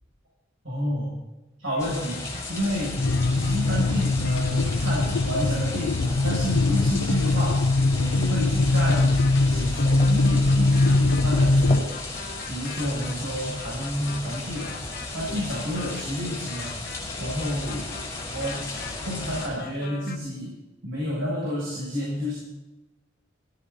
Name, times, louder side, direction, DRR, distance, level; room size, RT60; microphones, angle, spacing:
voice 1, 0.6-1.2 1.6-3.0 3.3-7.7 7.9-9.2 9.5-12.0 12.5-14.8 15.1-16.8 17.2-17.9 18.3-18.7 19.0-20.6 20.8-22.4, equal, 80° right, -6 dB, 7.6 m, -30 dB
sound 1, 1.6-6.9 8.8-20.2, left 3 dB, 50° left, 1.3 m, -41 dB
sound 2, 1.8-19.5, left 2 dB, 15° left, 5.2 m, -35 dB
sound 3, 3.0-11.8, left 2 dB, 90° left, 0.7 m, -22 dB
17.5 x 17.5 x 4.3 m, 1.1 s
head